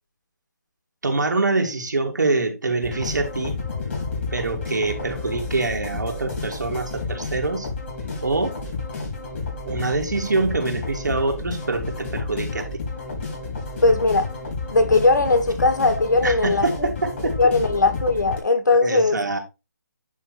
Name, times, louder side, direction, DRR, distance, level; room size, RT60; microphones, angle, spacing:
voice 1, 1.0-3.5 4.3-7.7 8.2-8.6 9.7-12.8 16.2-17.4 18.8-19.4, right 3 dB, 85° right, 2.9 m, -25 dB
sound 1, 2.8-18.4, left 3 dB, 40° left, 4.5 m, -31 dB
voice 2, 13.8-14.3 14.7-16.9 17.4-19.2, left 3 dB, 85° left, 2.5 m, -19 dB
10.0 x 3.9 x 4.4 m
hypercardioid pair, 165°, 10 cm